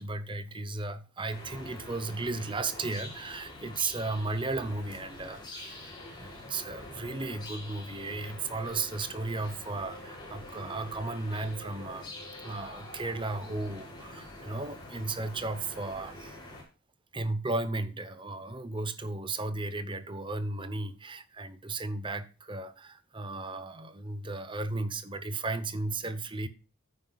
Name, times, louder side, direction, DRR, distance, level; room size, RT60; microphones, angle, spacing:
voice 1, 0.0-16.4 17.1-26.5, right 2 dB, 25° right, 0.8 m, -35 dB
sound 1, 1.3-16.6, left 1 dB, 20° left, 4.9 m, -45 dB
13.5 x 9.7 x 2.4 m
head